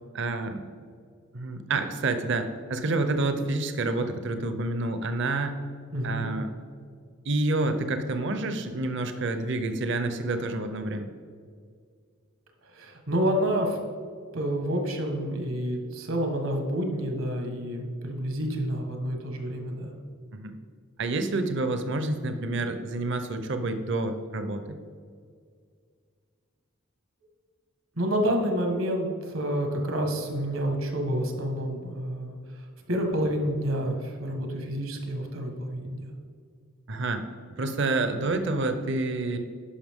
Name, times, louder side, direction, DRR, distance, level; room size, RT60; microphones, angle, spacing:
voice 1, 0.1-0.6 1.3-5.6 6.0-6.5 7.2-11.1 20.3-20.5 21.0-24.8 36.9-37.3 37.6-39.4, right 2 dB, 60° right, 8 dB, 0.7 m, -28 dB
voice 2, 5.9-6.3 12.7-13.8 14.3-19.9 28.0-36.1, equal, 80° right, 3 dB, 1.4 m, -29 dB
11.0 x 5.7 x 3.6 m, 2.1 s
head